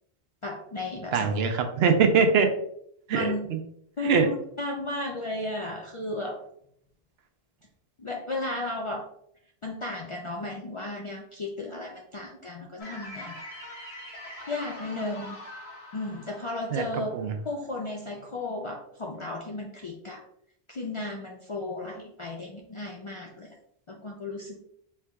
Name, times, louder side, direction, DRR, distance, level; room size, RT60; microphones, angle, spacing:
voice 1, 0.4-1.4 3.1-3.5 4.0-6.4 8.0-9.1 9.6-13.3 14.5-15.5 15.9-17.1 17.4-20.2 20.7-23.5 23.9-24.6, left 2 dB, 50° left, 0 dB, 0.4 m, -34 dB
voice 2, 1.1-2.5 3.1-3.3 4.0-4.3 16.7-16.8 17.1-17.3, right 5 dB, 75° right, 6 dB, 0.8 m, -22 dB
sound 1, 12.8-17.9, left 1 dB, 75° left, 1.6 m, -43 dB
4.5 x 3.7 x 2.2 m, 0.69 s
omnidirectional pair, 1.1 m